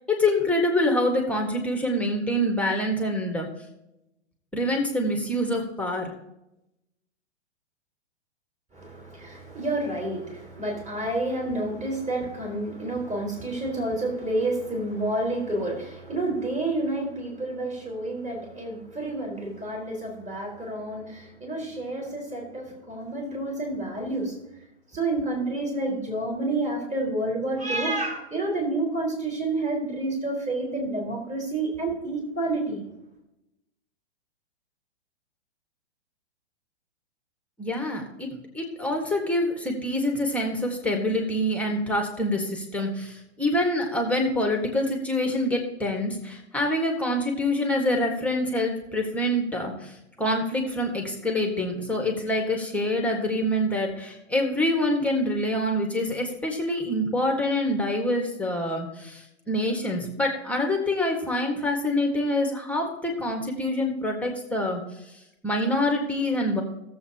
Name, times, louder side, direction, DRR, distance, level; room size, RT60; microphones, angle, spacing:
voice 1, 0.1-3.5 4.5-6.1 37.6-38.3 38.5-64.8 65.4-66.6, left 1 dB, 5° left, 2 dB, 1.6 m, -26 dB
voice 2, 8.7-24.3 24.9-32.8, right 2 dB, 20° right, -1 dB, 4.4 m, -29 dB
17.5 x 7.5 x 2.9 m, 0.88 s
hypercardioid pair, 130°, 34 cm